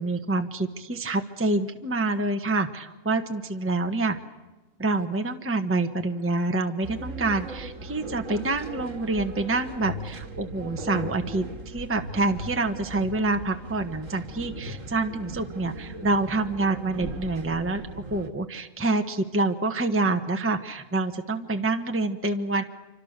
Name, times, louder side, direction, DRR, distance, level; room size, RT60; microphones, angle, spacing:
voice 1, 0.0-4.2 4.8-17.8 18.1-22.6, right 2 dB, 10° right, 6 dB, 1.2 m, -27 dB
sound 1, 6.8-18.3, right 1 dB, 55° right, 2.2 m, -38 dB
28.0 x 25.0 x 6.7 m, 1.2 s
omnidirectional pair, 1.6 m